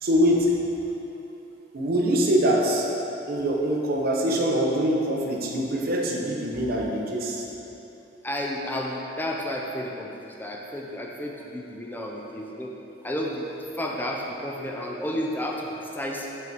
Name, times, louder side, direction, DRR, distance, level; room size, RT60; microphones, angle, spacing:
voice 1, 0.0-0.6 1.7-2.9 3.3-7.5 12.2-12.3, equal, 55° right, -1 dB, 0.7 m, -24 dB
voice 2, 8.2-12.7 13.0-13.5 13.8-16.3, left 1 dB, 10° left, -1 dB, 0.4 m, -31 dB
5.4 x 3.9 x 4.6 m, 3.0 s
head